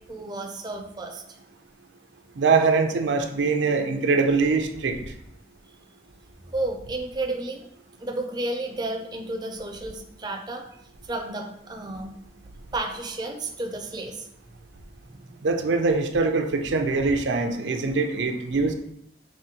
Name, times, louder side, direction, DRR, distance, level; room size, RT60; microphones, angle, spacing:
voice 1, 0.1-1.2 6.5-7.6 8.0-10.7 11.1-12.1 12.7-14.3 15.3-15.5, right 2 dB, 25° right, 3 dB, 0.4 m, -32 dB
voice 2, 2.4-5.0 15.4-18.7, right 4 dB, 85° right, 5 dB, 0.5 m, -23 dB
4.9 x 3.0 x 2.9 m, 0.77 s
head